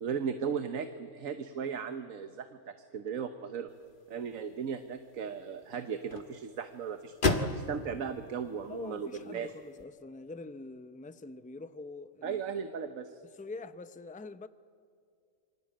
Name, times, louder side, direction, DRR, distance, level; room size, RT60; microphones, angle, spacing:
voice 1, 0.0-3.7 4.1-9.5 12.2-13.2, right 7 dB, 90° right, 1.5 m, -37 dB
sound 1, 3.7-9.8, left 3 dB, 40° left, 1.7 m, -37 dB
voice 2, 8.7-12.7 13.2-14.5, left 3 dB, 10° left, 0.5 m, -45 dB
27.5 x 24.5 x 8.7 m
omnidirectional pair, 1.4 m